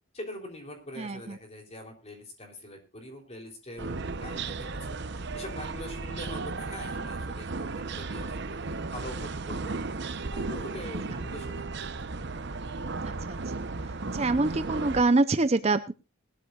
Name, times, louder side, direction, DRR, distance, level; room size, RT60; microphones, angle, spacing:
voice 1, 0.1-4.8 5.1-9.7 10.3-11.9, left 1 dB, 30° left, 3 dB, 3.6 m, -43 dB
voice 2, 1.0-1.4 13.0-13.4 14.1-15.9, right 3 dB, 30° right, 12 dB, 0.5 m, -25 dB
sound 1, 3.8-15.0, right 3 dB, 55° right, 0.8 m, -35 dB
20.5 x 12.5 x 2.4 m, 0.28 s
head